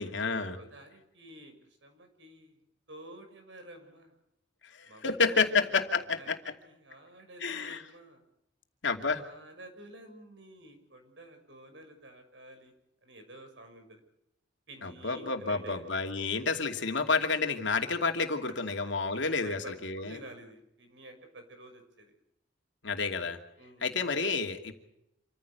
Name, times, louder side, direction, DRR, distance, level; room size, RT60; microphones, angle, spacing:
voice 1, 0.0-0.6 4.6-6.4 7.4-7.8 8.8-9.2 14.8-20.2 22.8-23.4 23.8-24.7, left 4 dB, 80° left, 4 dB, 2.7 m, -30 dB
voice 2, 0.5-2.6 2.9-4.2 4.8-5.9 6.2-8.2 9.2-12.7 13.0-14.0 14.7-15.8 19.4-22.1 23.6-23.9, right 1 dB, 80° right, 6 dB, 6.3 m, -50 dB
27.5 x 15.0 x 8.2 m, 0.81 s
head